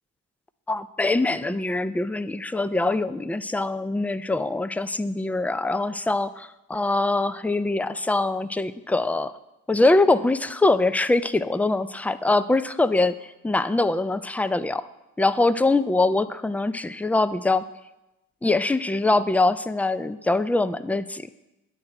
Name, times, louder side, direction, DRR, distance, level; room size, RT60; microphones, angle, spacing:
voice 1, 0.7-9.3 9.7-13.2 13.4-14.8 15.2-17.6 18.4-21.3, left 2 dB, 5° left, 15 dB, 0.4 m, -23 dB
10.5 x 4.7 x 7.7 m, 0.97 s
hypercardioid pair, 50°, 44 cm